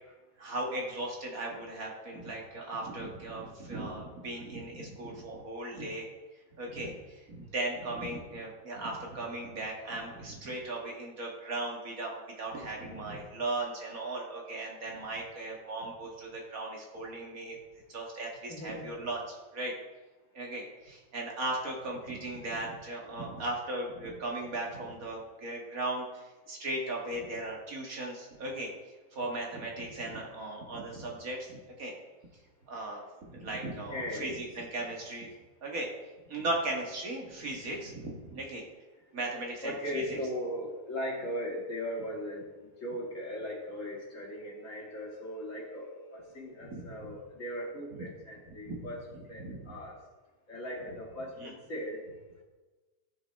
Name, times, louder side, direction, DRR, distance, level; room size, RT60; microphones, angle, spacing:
voice 1, 0.4-6.1 6.6-17.6 17.9-19.7 20.3-28.7 29.1-31.9 32.7-35.3 35.6-35.9 36.3-38.6 39.1-40.2 46.6-47.1 48.6-49.6 51.4-51.5, right 2 dB, 55° right, -1 dB, 2.1 m, -37 dB
voice 2, 18.5-18.9 33.9-34.3 39.6-50.0 50.5-52.4, equal, 50° left, -4 dB, 2.7 m, -38 dB
15.0 x 5.4 x 3.5 m, 1.2 s
omnidirectional pair, 1.8 m